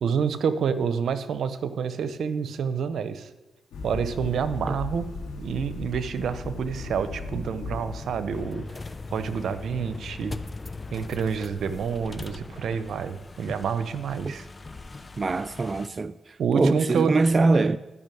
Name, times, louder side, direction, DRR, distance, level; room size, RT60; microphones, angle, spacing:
voice 1, 0.0-3.3 3.8-5.1 5.4-8.6 9.1-10.3 10.9-14.4 16.4-17.1, right 6 dB, 75° right, 0.8 m, -28 dB
sound 1, 3.7-8.4, left 3 dB, 90° left, 2.4 m, -36 dB
sound 2, 8.3-15.9, left 3 dB, 35° left, 0.8 m, -39 dB
voice 2, 15.2-17.8, right 3 dB, 45° right, 0.4 m, -23 dB
12.5 x 6.1 x 9.2 m
cardioid pair, 60°, 0 cm